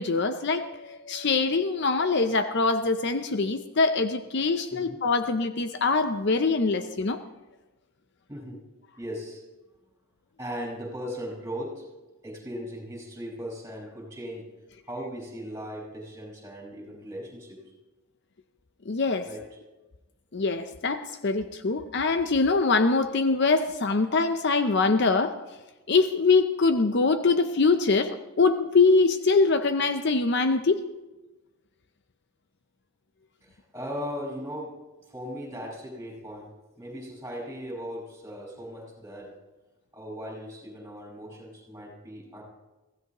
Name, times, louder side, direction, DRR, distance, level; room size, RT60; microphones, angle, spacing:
voice 1, 0.0-7.2 18.9-19.3 20.3-25.4 25.9-30.8, left 3 dB, 50° left, 9 dB, 0.6 m, -23 dB
voice 2, 8.3-8.6 9.0-9.4 10.4-11.9 12.2-14.5 14.9-17.6 19.2-19.4 33.4-34.8 35.1-36.5 36.8-39.3 39.9-42.4, equal, 15° right, -3 dB, 5.3 m, -38 dB
23.5 x 16.0 x 3.0 m, 1.1 s
head